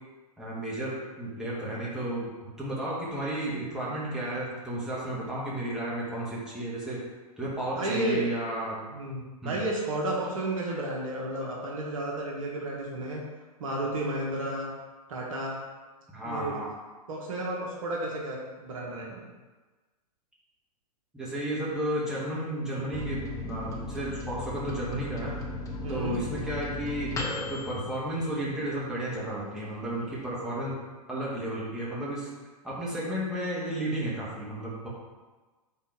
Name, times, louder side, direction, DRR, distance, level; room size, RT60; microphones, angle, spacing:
voice 1, 0.4-2.3 2.6-7.0 7.4-8.8 9.4-9.6 16.1-16.7 21.1-25.4 25.9-30.7 31.1-32.3 32.6-34.9, right 1 dB, 5° right, -8 dB, 1.9 m, -33 dB
voice 2, 7.7-8.3 8.9-13.2 13.6-14.7 15.1-15.6 16.2-16.5 17.1-19.3 25.8-26.1, right 1 dB, 55° right, -2 dB, 1.4 m, -32 dB
Microwave oven, 22.9-29.0 29.4-29.5 29.8-30.4, left 3 dB, 15° left, 0.9 m, -37 dB
5.3 x 4.2 x 5.1 m, 1.3 s
figure-of-eight pair, 105°, 20 cm